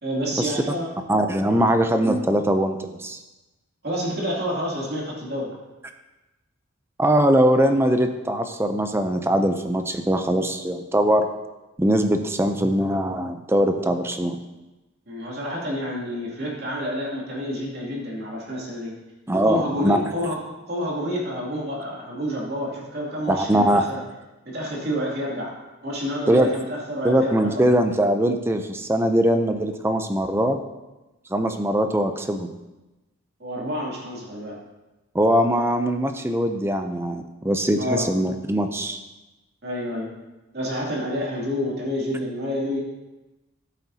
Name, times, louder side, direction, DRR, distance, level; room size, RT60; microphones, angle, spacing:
voice 1, 0.0-0.9 1.5-1.7 3.8-5.5 15.1-18.9 19.3-24.0 24.5-25.5 25.8-27.7 33.4-34.6 37.8-38.1 39.6-40.1 40.5-42.8, equal, 50° right, -4 dB, 2.6 m, -29 dB
voice 2, 1.1-3.2 7.0-11.3 11.8-14.4 19.3-20.0 23.3-23.9 26.3-26.5 27.0-30.6 31.3-32.5 35.1-39.0, right 1 dB, 10° right, 7 dB, 0.5 m, -21 dB
14.5 x 8.3 x 2.8 m, 1.1 s
head